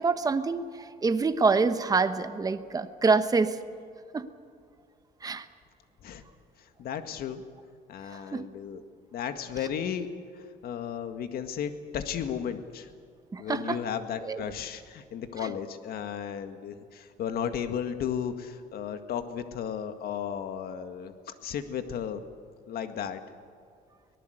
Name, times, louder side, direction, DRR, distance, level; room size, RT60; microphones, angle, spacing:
voice 1, 0.0-3.6 4.1-4.3 5.2-5.5 8.1-8.5 13.3-13.8 14.2-14.4 15.4-15.5, right 4 dB, 20° right, 10 dB, 1.1 m, -26 dB
voice 2, 6.8-7.4 7.9-8.8 9.1-10.1 10.4-12.9 13.4-22.2 22.7-23.2, left 8 dB, 65° left, 8 dB, 1.9 m, -34 dB
24.0 x 19.0 x 8.0 m, 2.2 s
cardioid pair, 110°, 17 cm